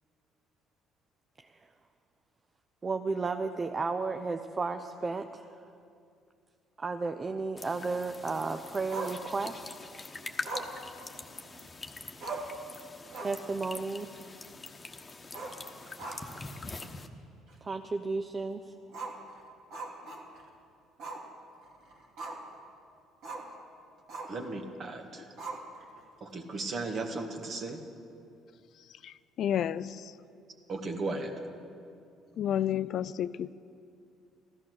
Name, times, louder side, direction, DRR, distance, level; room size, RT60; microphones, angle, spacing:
voice 1, 2.8-5.5 6.8-9.7 13.2-14.2 17.6-18.6, right 4 dB, 30° right, 7 dB, 0.7 m, -33 dB
sound 1, 7.6-17.1, left 3 dB, 30° left, 1.2 m, -44 dB
Growling, 8.9-9.7 10.4-11.7 11.9-12.0 12.2-12.6 13.0-13.5 13.8-13.9 15.2-16.5 16.8-16.9 17.5-17.6 18.9-20.5 21.0-21.3 21.6-22.6 23.2-23.5 24.1-24.5 25.4-26.0, right 3 dB, 65° right, 2.6 m, -41 dB
voice 2, 24.3-25.3 26.2-27.8 30.7-31.3, right 3 dB, 50° right, 4 dB, 1.9 m, -36 dB
voice 3, 29.0-30.1 32.4-33.5, left 10 dB, 60° left, 16 dB, 0.3 m, -31 dB
15.0 x 14.0 x 6.5 m, 2.5 s
hypercardioid pair, 55°, 0 cm